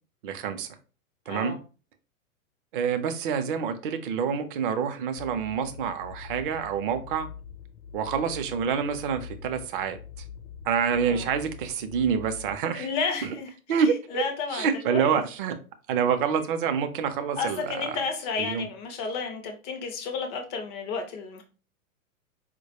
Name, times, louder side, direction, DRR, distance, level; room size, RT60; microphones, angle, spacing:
voice 1, 0.2-0.7 1.3-1.6 2.7-7.3 7.9-10.0 10.6-12.9 13.2-13.3 13.7-14.2 14.5-15.6 15.9-17.6 18.4-18.6, right 7 dB, 40° right, 9 dB, 0.5 m, -27 dB
voice 2, 1.3-1.6 11.1-11.3 12.7-15.2 17.4-21.4, left 5 dB, 15° left, 4 dB, 0.3 m, -32 dB
sound 1, 5.2-12.6, left 7 dB, 60° left, 0.6 m, -44 dB
4.4 x 2.2 x 2.8 m, 0.35 s
figure-of-eight pair, 100°, 43 cm